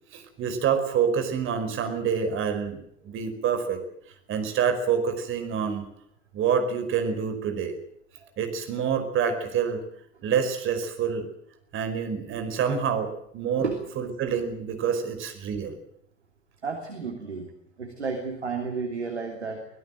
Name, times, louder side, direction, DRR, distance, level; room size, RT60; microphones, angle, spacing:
voice 1, 0.1-3.8 4.3-5.8 6.3-7.8 8.4-9.8 10.2-11.3 11.7-13.7 14.0-15.8, right 7 dB, 40° right, 7 dB, 5.0 m, -27 dB
voice 2, 16.6-17.5 17.8-19.7, right 5 dB, 80° right, 4 dB, 3.1 m, -32 dB
24.5 x 17.0 x 7.8 m, 0.71 s
figure-of-eight pair, 80°, 32 cm